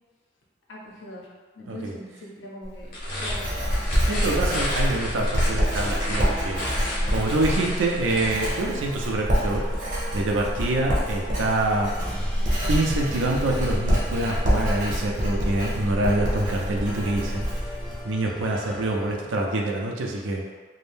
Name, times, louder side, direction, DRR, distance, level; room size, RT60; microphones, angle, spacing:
voice 1, 0.7-2.9 3.2-3.7, left 1 dB, 85° left, -3 dB, 0.7 m, -41 dB
Writing, 2.6-18.0, equal, 45° right, 0.7 m, -26 dB
sound 1, 2.8-8.6, left 1 dB, 50° left, 0.7 m, -33 dB
sound 2, 3.1-19.2, equal, 5° left, 0.3 m, -40 dB
voice 2, 4.1-6.6 7.1-9.6 10.1-12.2 12.7-17.4 18.0-20.4, right 2 dB, 85° right, 0 dB, 0.4 m, -26 dB
2.6 x 2.0 x 3.4 m, 1.4 s
head